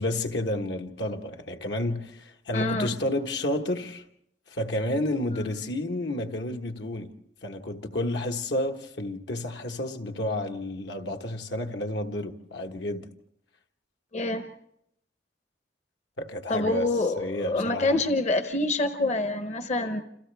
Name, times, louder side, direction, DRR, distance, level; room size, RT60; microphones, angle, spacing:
voice 1, 0.0-4.0 4.5-7.1 7.4-13.1 16.2-16.9 17.2-18.0, left 1 dB, 75° left, 1.3 m, -30 dB
voice 2, 2.5-2.9 5.4-5.5 14.1-14.5 16.5-20.0, left 2 dB, 40° left, 0.9 m, -26 dB
29.0 x 27.5 x 3.4 m
head